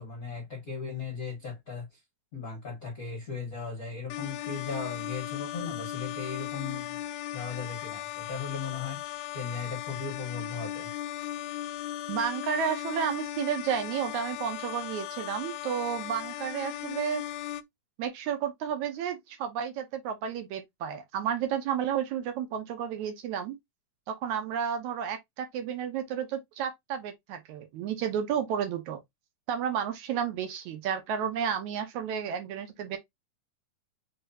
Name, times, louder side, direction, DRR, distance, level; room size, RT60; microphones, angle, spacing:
voice 1, 0.0-2.0 2.3-7.0 7.3-10.9, left 5 dB, 55° left, 1.0 m, -37 dB
sound 1, 4.1-17.6, left 13 dB, 85° left, 2.1 m, -37 dB
voice 2, 12.1-17.2 18.0-23.6 24.1-29.0 29.5-33.0, right 8 dB, 75° right, 2.1 m, -32 dB
4.7 x 4.0 x 2.7 m
omnidirectional pair, 3.7 m